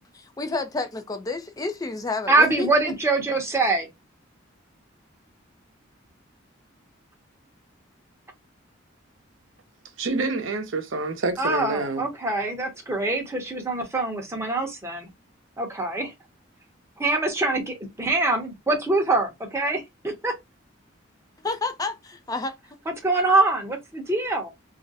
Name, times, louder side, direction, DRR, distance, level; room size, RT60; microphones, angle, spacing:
voice 1, 0.4-2.7 21.4-22.5, left 3 dB, 20° left, 0.4 m, -29 dB
voice 2, 2.3-3.9 11.4-15.1 15.6-16.1 17.0-20.3 23.0-24.5, right 2 dB, 15° right, 0.8 m, -24 dB
voice 3, 10.0-12.0, right 3 dB, 75° right, 0.7 m, -27 dB
2.5 x 2.1 x 3.9 m
head